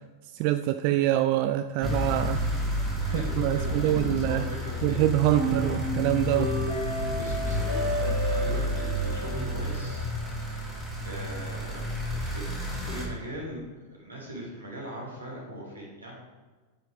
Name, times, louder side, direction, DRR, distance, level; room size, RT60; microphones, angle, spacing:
voice 1, 0.3-2.4 3.1-4.4 4.8-6.6, right 14 dB, 45° right, 11 dB, 0.3 m, -25 dB
sound 1, 1.8-13.1, left 1 dB, 5° left, 2.6 m, -31 dB
voice 2, 3.0-5.9 7.1-10.1 11.0-13.6 13.9-16.2, right 1 dB, 80° right, -3 dB, 3.0 m, -40 dB
sound 2, 5.3-10.4, right 2 dB, 60° right, 2.4 m, -33 dB
9.6 x 9.3 x 3.5 m, 1.3 s
figure-of-eight pair, 90°, 0 cm